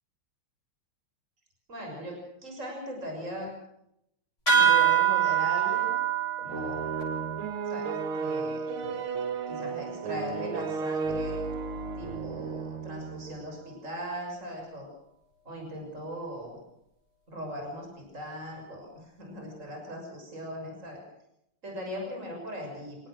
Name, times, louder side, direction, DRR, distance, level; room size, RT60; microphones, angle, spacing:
voice 1, 1.7-3.5 4.5-5.9 6.4-6.8 7.7-9.1 9.5-11.4 11.9-14.9 15.4-16.6 17.3-21.0 21.6-23.0, equal, 35° right, 1 dB, 6.8 m, -39 dB
sound 1, 4.5-9.4, right 8 dB, 25° left, 8.1 m, -26 dB
sound 2, 6.5-13.4, right 5 dB, 75° right, 2.4 m, -34 dB
27.0 x 18.0 x 6.4 m, 0.79 s
omnidirectional pair, 2.3 m